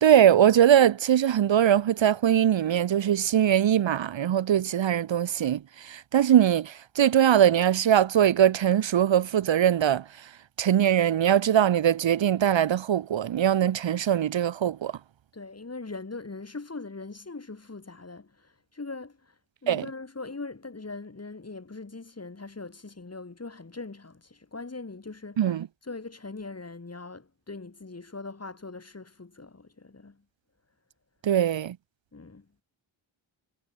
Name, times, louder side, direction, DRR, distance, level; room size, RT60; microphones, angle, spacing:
voice 1, 0.0-10.0 10.6-14.9 19.7-19.9 25.4-25.7 31.2-31.8, right 10 dB, 70° right, 0.7 m, -21 dB
voice 2, 15.3-19.3 19.6-25.6 25.8-30.2 32.1-32.5, left 3 dB, 30° left, 1.9 m, -41 dB
wide cardioid pair, 75°, 48 cm